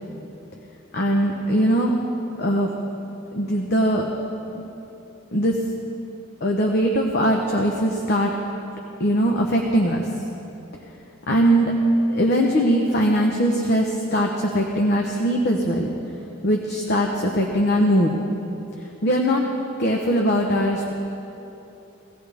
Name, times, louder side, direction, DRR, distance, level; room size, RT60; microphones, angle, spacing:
voice 1, 0.9-1.9 2.4-2.7 3.3-4.1 4.5-4.6 5.3-5.6 6.4-8.3 9.0-10.1 11.3-11.7 12.1-15.9 16.4-18.2 19.0-19.4 19.8-20.9, equal, 50° left, 1 dB, 0.9 m, -21 dB
18.0 x 14.5 x 3.5 m, 3.0 s
head